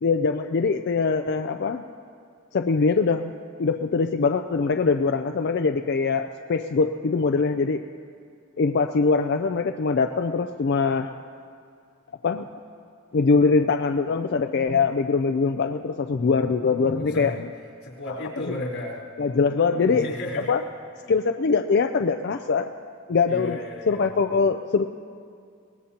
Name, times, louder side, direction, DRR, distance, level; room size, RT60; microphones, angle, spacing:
voice 1, 0.0-1.8 2.5-3.3 3.6-7.8 8.6-11.1 12.2-12.5 13.1-17.5 18.5-18.6 19.2-20.1 20.5-20.6 21.1-22.7 23.1-23.6 23.9-24.9, left 4 dB, 55° left, 7 dB, 0.4 m, -22 dB
voice 2, 16.7-17.4 17.8-19.0 19.9-20.5 23.3-24.1, left 1 dB, 90° left, -5 dB, 4.0 m, -34 dB
23.0 x 19.0 x 2.9 m, 2.3 s
head